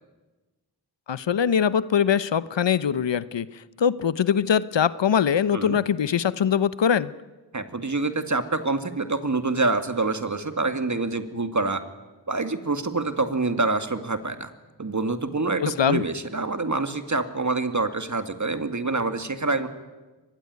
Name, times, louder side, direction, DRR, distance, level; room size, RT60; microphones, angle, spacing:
voice 1, 1.1-3.5 3.8-7.1 15.6-16.0, left 8 dB, 70° left, 17 dB, 0.9 m, -22 dB
voice 2, 7.5-11.8 12.3-14.5 14.8-19.7, right 3 dB, 40° right, 9 dB, 2.3 m, -26 dB
24.0 x 20.5 x 9.5 m, 1.2 s
cardioid pair, 40°, 45 cm